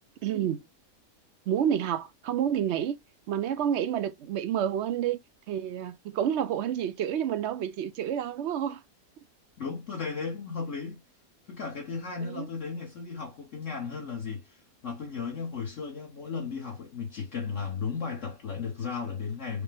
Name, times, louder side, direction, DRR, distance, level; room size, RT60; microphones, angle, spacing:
voice 1, 0.2-0.6 1.5-3.0 3.3-5.2 5.5-8.8 12.2-12.5, right 9 dB, 65° right, 0.7 m, -29 dB
voice 2, 9.6-11.0 11.5-14.6 14.8-19.6, left 5 dB, 60° left, 1.4 m, -35 dB
4.9 x 2.1 x 3.3 m
omnidirectional pair, 1.5 m